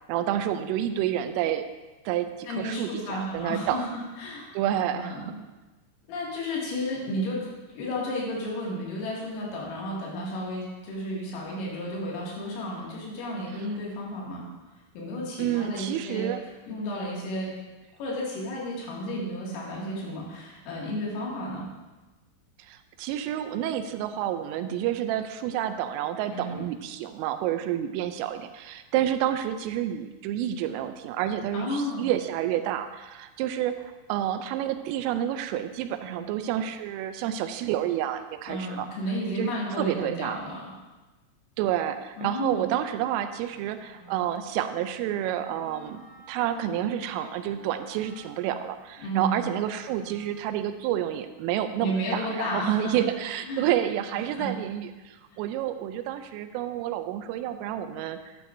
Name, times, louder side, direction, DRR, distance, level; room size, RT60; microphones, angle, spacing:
voice 1, 0.1-1.7 2.1-3.9 4.5-5.2 15.4-16.4 22.6-38.9 39.4-40.4 41.6-46.0 46.3-58.2, right 11 dB, 85° right, 9 dB, 3.1 m, -29 dB
voice 2, 2.5-4.6 4.9-5.4 6.1-7.4 7.7-14.4 14.9-16.3 16.7-17.5 18.0-21.7 26.3-26.6 31.5-32.1 38.5-40.6 42.2-42.6 49.0-49.5 51.8-53.0 53.5-53.7 54.2-54.6, equal, 85° left, -5 dB, 4.9 m, -32 dB
Wind instrument woodwind instrument, 43.5-50.8, left 1 dB, 55° left, 4.9 m, -53 dB
11.5 x 9.8 x 2.6 m, 1.2 s
omnidirectional pair, 5.8 m